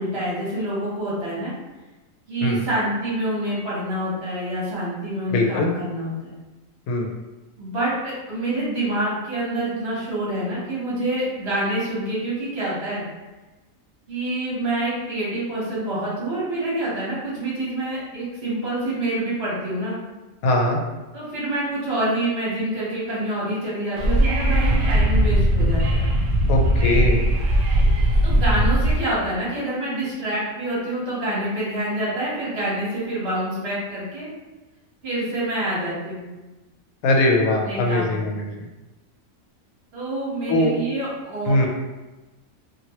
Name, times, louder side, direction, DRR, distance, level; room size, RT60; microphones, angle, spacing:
voice 1, 0.0-1.5 2.3-6.3 7.6-13.0 14.1-20.0 21.1-26.0 28.2-34.3 35.0-36.2 37.6-38.1 39.9-41.7, right 1 dB, 50° right, -8 dB, 1.2 m, -27 dB
voice 2, 5.3-5.7 6.9-7.1 20.4-20.8 26.5-27.2 37.0-38.5 40.5-40.7 41.5-41.7, left 1 dB, 85° left, 1 dB, 1.0 m, -20 dB
Wind / Subway metro underground, 24.0-29.0, right 1 dB, 65° right, 0.5 m, -19 dB
2.9 x 2.6 x 2.8 m, 1.1 s
omnidirectional pair, 1.4 m